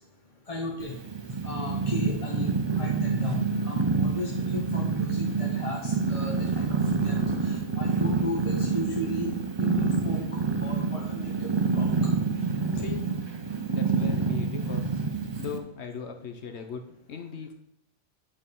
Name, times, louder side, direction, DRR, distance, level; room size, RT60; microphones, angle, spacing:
voice 1, 0.5-1.0 1.4-6.8 7.0-7.2 7.4-9.3 9.6-10.2 10.6-12.1 12.8-12.9, left 1 dB, 35° left, -1 dB, 0.8 m, -35 dB
Purr, 0.8-15.6, right 4 dB, 30° right, 0.5 m, -27 dB
voice 2, 13.7-14.8 15.4-17.5, left 6 dB, 65° left, 6 dB, 1.0 m, -38 dB
8.8 x 3.7 x 5.3 m, 0.79 s
omnidirectional pair, 1.3 m